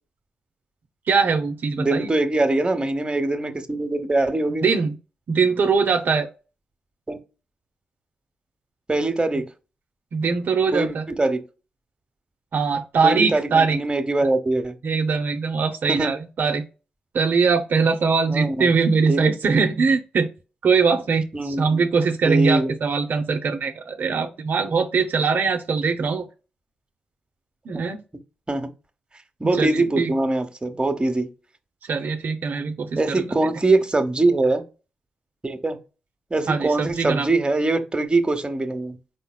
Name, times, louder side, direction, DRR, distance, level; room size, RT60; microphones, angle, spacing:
voice 1, 1.1-2.1 4.6-4.9 5.3-6.3 10.1-11.0 12.5-13.8 14.8-16.6 17.1-20.3 20.6-26.3 27.7-28.0 29.6-30.1 31.9-33.5 36.5-37.3, right 5 dB, 65° right, 0.7 m, -22 dB
voice 2, 1.8-4.6 7.1-7.2 8.9-9.5 10.7-11.4 13.0-14.7 15.9-16.1 18.3-18.7 19.1-19.3 21.3-21.8 22.2-22.7 28.5-28.7 29.4-31.3 33.0-34.6 35.4-35.8 36.3-39.0, right 2 dB, 25° right, 1.0 m, -22 dB
5.1 x 4.0 x 2.3 m
supercardioid pair, 45°, 4 cm